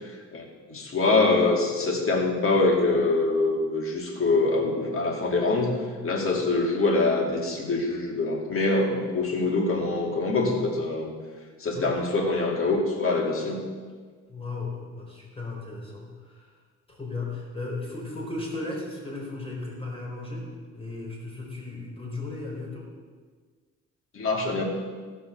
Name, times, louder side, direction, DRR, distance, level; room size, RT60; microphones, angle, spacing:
voice 1, 0.7-11.1 11.6-13.6 24.1-24.6, left 3 dB, 45° left, 0 dB, 2.8 m, -24 dB
voice 2, 11.7-12.1 14.3-16.5 16.9-20.5 20.7-22.9, left 2 dB, 20° left, -2 dB, 4.3 m, -35 dB
15.5 x 6.1 x 6.4 m, 1.5 s
cardioid pair, 90°, 30 cm